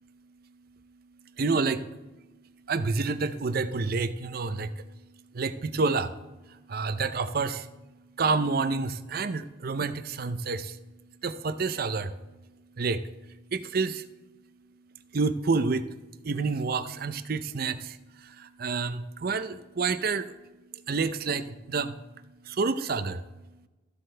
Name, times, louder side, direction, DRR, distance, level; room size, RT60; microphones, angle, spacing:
voice 1, 1.4-1.8 2.7-4.8 5.3-6.1 6.7-7.7 8.2-10.8 11.2-12.1 12.8-13.0 13.5-14.0 15.1-15.9 16.2-20.3 20.9-21.9 22.5-23.2, right 4 dB, 50° right, 12 dB, 0.5 m, -28 dB
14.0 x 7.7 x 3.3 m, 1.1 s
head